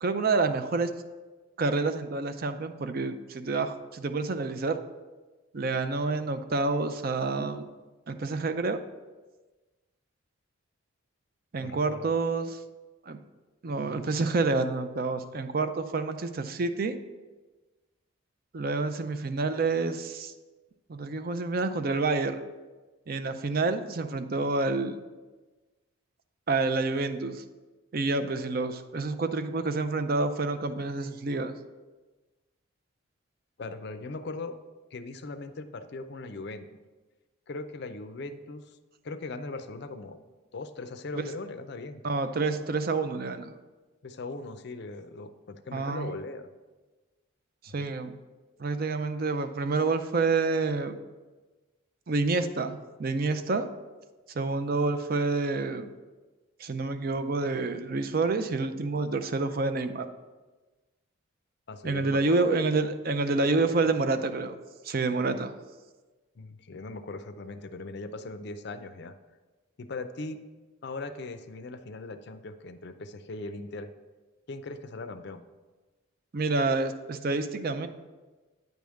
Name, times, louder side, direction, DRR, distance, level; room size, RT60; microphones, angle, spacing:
voice 1, 0.0-0.9 1.6-4.8 5.5-7.7 8.1-8.8 11.5-12.6 13.1-13.2 13.6-17.0 18.5-20.3 20.9-22.4 23.1-25.0 26.5-27.4 27.9-31.6 41.1-41.2 42.0-43.5 45.7-46.1 47.6-48.2 48.6-51.0 52.1-53.7 54.3-55.9 56.6-60.1 61.8-64.6 64.8-65.5 76.3-77.9, right 3 dB, 45° right, 9 dB, 0.4 m, -28 dB
voice 2, 11.6-12.1 33.6-34.6 34.9-36.7 37.5-38.8 39.0-40.2 40.5-42.0 44.0-46.5 47.7-47.8 61.7-62.5 66.4-69.1 69.8-70.4 70.8-73.9 74.5-75.4, left 3 dB, 50° left, 10 dB, 0.5 m, -39 dB
9.2 x 3.5 x 6.3 m, 1.2 s
head